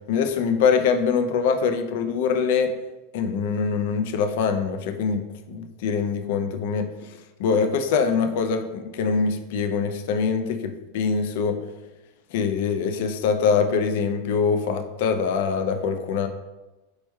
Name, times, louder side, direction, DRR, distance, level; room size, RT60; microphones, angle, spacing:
voice 1, 0.1-2.7 3.1-5.2 5.5-11.6 12.3-16.3, left 5 dB, 60° left, 7 dB, 0.4 m, -24 dB
4.3 x 3.0 x 2.2 m, 1.1 s
supercardioid pair, 155°, 0 cm